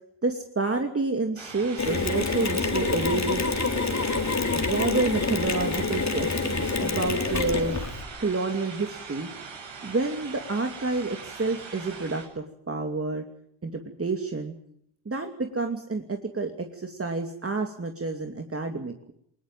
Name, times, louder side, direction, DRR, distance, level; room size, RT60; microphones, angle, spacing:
voice 1, 0.2-3.6 4.5-7.8 8.2-9.3 9.8-13.2 13.6-14.5 15.1-19.1, right 3 dB, 30° right, 4 dB, 2.7 m, -29 dB
sound 1, 1.4-12.3, right 5 dB, 70° right, 7.3 m, -41 dB
Mechanisms, 1.8-8.0, left 4 dB, 35° left, 3.8 m, -27 dB
20.0 x 18.5 x 9.2 m, 0.70 s
supercardioid pair, 60°, 48 cm